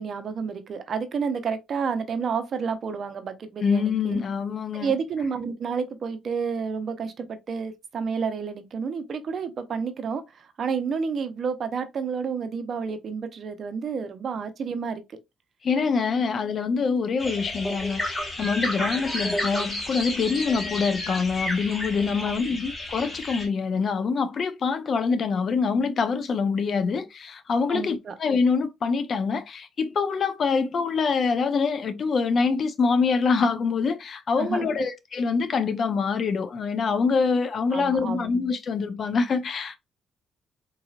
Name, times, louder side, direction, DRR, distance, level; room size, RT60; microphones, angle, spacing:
voice 1, 0.0-4.2 4.7-15.0 18.8-19.0 22.2-22.3 27.7-28.1 34.4-34.7 37.7-38.3, right 6 dB, 55° right, 0.7 m, -30 dB
voice 2, 3.6-4.9 15.6-39.8, left 5 dB, 50° left, 0.6 m, -25 dB
sound 1, 17.2-23.5, left 1 dB, 20° left, 1.7 m, -31 dB
3.9 x 2.9 x 2.4 m
cardioid pair, 90°, 0 cm